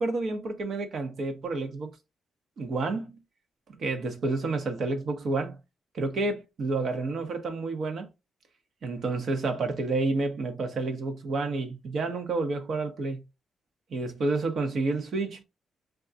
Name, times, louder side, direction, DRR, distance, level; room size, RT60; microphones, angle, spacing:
voice 1, 0.0-1.9 2.6-3.2 3.8-5.6 5.9-8.1 8.8-13.2 13.9-15.4, right 3 dB, 60° right, 0.9 m, -29 dB
2.4 x 2.2 x 3.8 m
cardioid pair, 115°, 0 cm